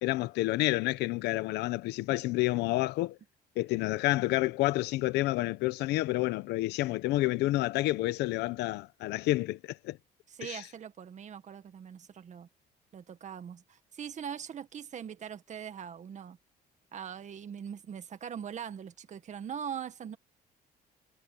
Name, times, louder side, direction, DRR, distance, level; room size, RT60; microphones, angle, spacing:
voice 1, 0.0-3.2 3.6-10.0 10.4-10.6, left 18 dB, 85° left, 1.0 m, -29 dB
voice 2, 10.3-12.5 12.9-16.4 16.9-20.2, right 8 dB, 45° right, 1.8 m, -41 dB
cardioid pair, 110°, 17 cm